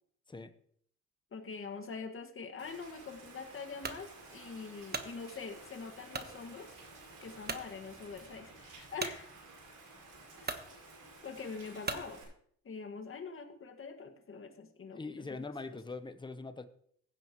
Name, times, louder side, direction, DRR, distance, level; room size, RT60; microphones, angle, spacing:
voice 1, 1.3-6.8 7.2-9.3 10.4-10.6 11.2-12.2 12.6-15.8, left 5 dB, 45° left, 5 dB, 1.9 m, -44 dB
Rain, 2.6-12.2, right 3 dB, 85° right, 5.0 m, -53 dB
sound 1, 3.8-4.0 4.6-5.1 6.1-6.3 6.9-7.0 7.4-7.7 9.0-9.2 10.0-10.1 10.4-10.7 11.8-12.1, right 4 dB, 30° right, 1.2 m, -38 dB
voice 2, 14.9-16.7, left 3 dB, 15° left, 10 dB, 0.9 m, -42 dB
16.0 x 9.2 x 3.1 m, 0.64 s
cardioid pair, 90°, 30 cm